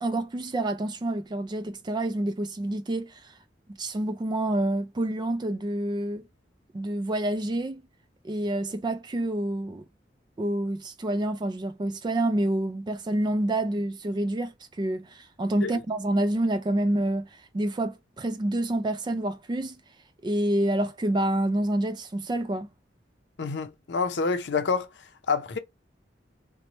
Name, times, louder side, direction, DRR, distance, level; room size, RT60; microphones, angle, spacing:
voice 1, 0.0-3.3 3.8-6.2 6.7-7.8 8.2-9.8 10.4-19.8 20.2-22.7, right 1 dB, 25° right, 0.4 m, -28 dB
voice 2, 23.4-24.9 25.3-25.6, left 4 dB, 70° left, 0.6 m, -27 dB
3.0 x 2.2 x 4.0 m
head